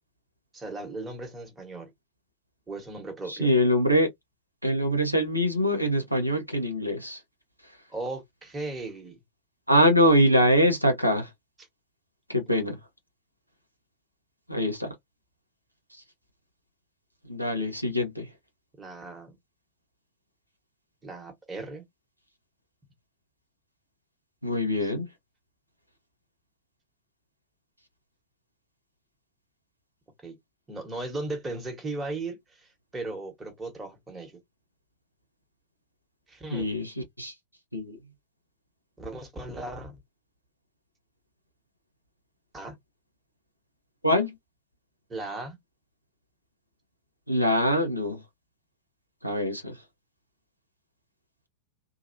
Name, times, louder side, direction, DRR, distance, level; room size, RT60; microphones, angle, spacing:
voice 1, 0.5-1.9 2.7-3.5 7.9-9.2 18.8-19.4 21.0-21.9 24.8-24.9 30.2-30.4 30.7-34.3 36.3-36.7 39.0-40.0 42.5-42.8 45.1-45.6, right 2 dB, 15° right, 1.3 m, -37 dB
voice 2, 3.3-4.1 4.6-7.2 7.6-7.7 9.7-11.3 12.3-12.8 14.5-14.9 15.9-16.0 17.3-18.3 24.4-25.1 36.5-37.3 37.7-38.0 44.0-44.3 47.3-48.2 49.2-49.8, equal, 90° right, 0.8 m, -24 dB
2.8 x 2.3 x 2.6 m
figure-of-eight pair, 90°, 0 cm